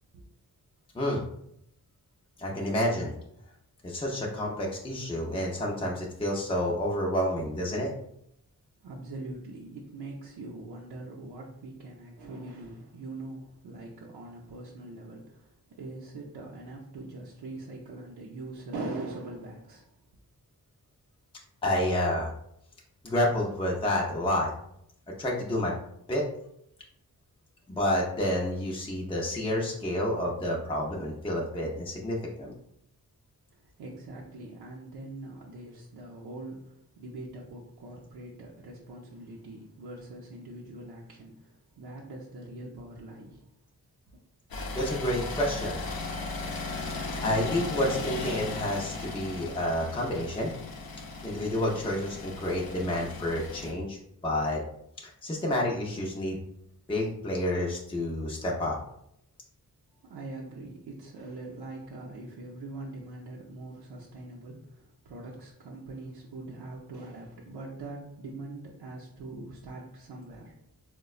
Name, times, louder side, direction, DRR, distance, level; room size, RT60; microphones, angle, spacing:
voice 1, 2.4-3.1 3.8-7.9 21.6-22.3 23.0-24.5 25.2-25.8 26.1-26.2 27.7-32.5 44.8-45.8 47.2-50.5 51.2-54.0 54.2-54.6 55.0-56.4 56.9-58.8, left 1 dB, 15° left, -2 dB, 0.5 m, -29 dB
voice 2, 8.8-19.9 33.5-43.4 60.0-70.6, right 2 dB, 85° right, -4 dB, 0.6 m, -42 dB
sound 1, 44.5-53.7, left 3 dB, 65° left, 0.6 m, -37 dB
3.9 x 2.2 x 2.3 m, 0.75 s
cardioid pair, 60°, 37 cm